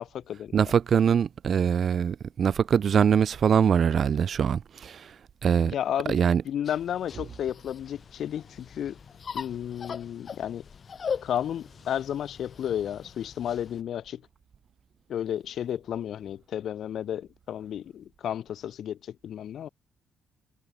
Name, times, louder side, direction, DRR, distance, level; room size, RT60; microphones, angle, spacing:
voice 1, 0.0-0.6 5.7-9.0 9.3-10.6 11.2-14.2 15.1-19.7, left 10 dB, 65° left, 5.0 m, -32 dB
voice 2, 0.5-5.1 5.4-5.7 6.1-6.4, right 7 dB, 55° right, 2.2 m, -23 dB
sound 1, 6.6-13.8, left 6 dB, 45° left, 4.8 m, -40 dB
cardioid pair, 90°, 0 cm